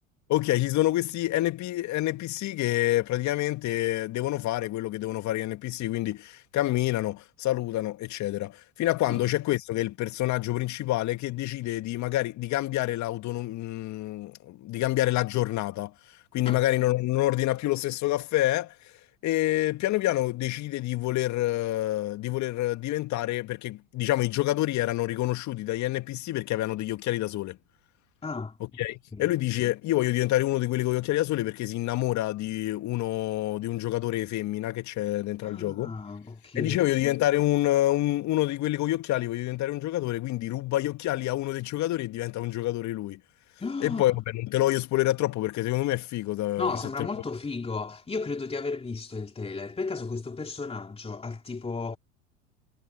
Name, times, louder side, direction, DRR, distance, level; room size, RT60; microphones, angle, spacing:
voice 1, 0.3-15.9 16.3-18.7 19.2-27.6 28.6-35.9 36.6-43.2 43.8-47.1, left 16 dB, 45° left, 2.1 m, -27 dB
voice 2, 28.2-28.6 29.1-29.3 35.4-36.8 43.6-44.1 46.6-52.0, left 4 dB, 15° left, 3.2 m, -34 dB
hypercardioid pair, 80°, 39 cm